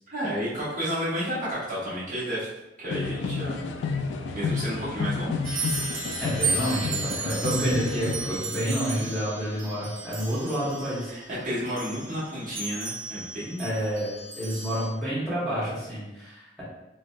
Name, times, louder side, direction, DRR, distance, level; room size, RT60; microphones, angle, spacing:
voice 1, 0.1-2.5 2.8-3.6 4.3-5.4 11.1-13.6, equal, 45° right, -9 dB, 1.0 m, -31 dB
sound 1, 2.9-8.4, left 4 dB, 80° left, 0.3 m, -31 dB
sound 2, 5.4-14.9, right 3 dB, 90° right, 0.7 m, -34 dB
voice 2, 6.2-11.1 13.6-16.6, equal, 5° left, -10 dB, 0.9 m, -29 dB
4.0 x 2.0 x 2.3 m, 0.98 s
head